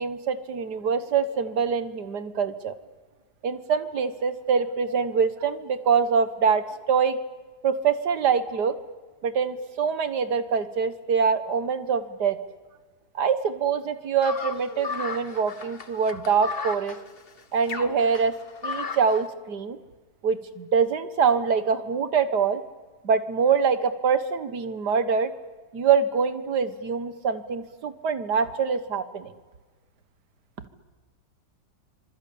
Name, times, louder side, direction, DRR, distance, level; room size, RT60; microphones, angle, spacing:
voice 1, 0.0-2.7 3.4-7.2 7.6-8.8 9.2-12.4 13.2-17.0 17.5-18.3 18.6-19.8 20.2-22.6 23.0-25.3 25.7-29.3, right 6 dB, 85° right, 11 dB, 2.0 m, -24 dB
sound 1, 14.2-19.2, left 5 dB, 40° left, 1.3 m, -35 dB
25.0 x 25.0 x 8.7 m, 1.3 s
omnidirectional pair, 1.7 m